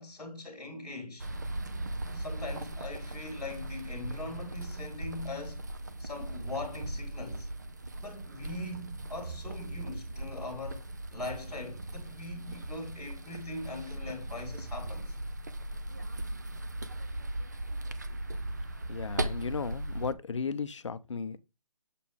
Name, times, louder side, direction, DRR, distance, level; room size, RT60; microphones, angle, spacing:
voice 1, 0.0-1.3 2.1-5.7 6.0-7.5 8.0-15.1, left 2 dB, 5° right, 1.9 m, -41 dB
sound 1, 1.2-20.1, right 1 dB, 30° right, 0.4 m, -38 dB
voice 2, 18.9-21.4, left 5 dB, 50° left, 0.7 m, -35 dB
7.5 x 4.2 x 3.5 m
hypercardioid pair, 175°, 20 cm